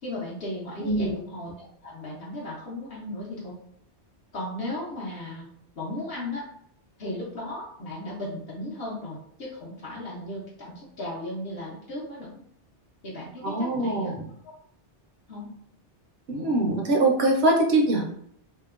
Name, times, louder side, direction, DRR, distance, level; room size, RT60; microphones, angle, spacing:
voice 1, 0.0-3.5 4.3-5.5 5.8-6.4 7.0-12.4 13.0-14.1 14.4-14.5 15.3-15.5, left 1 dB, 60° left, -6 dB, 0.9 m, -36 dB
voice 2, 0.8-1.2 13.4-14.2 16.3-18.1, right 2 dB, 65° right, 0 dB, 0.7 m, -23 dB
2.8 x 2.0 x 2.3 m, 0.70 s
omnidirectional pair, 1.2 m